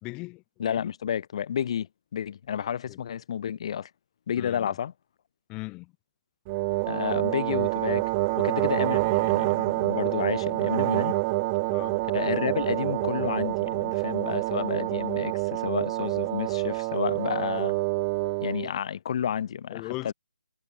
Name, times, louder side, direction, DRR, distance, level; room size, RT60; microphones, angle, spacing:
voice 1, 0.0-0.4 2.9-3.0 4.4-4.7 5.5-5.9 10.3-10.4 11.7-12.0 19.7-20.1, left 24 dB, 20° left, 2.9 m, -38 dB
voice 2, 0.6-3.9 4.3-4.9 6.9-8.0 8.3-11.1 12.1-17.8 18.4-20.1, left 8 dB, 45° left, 6.3 m, -31 dB
sound 1, 6.5-18.7, right 25 dB, 25° right, 2.5 m, -27 dB
figure-of-eight pair, 150°, 4 cm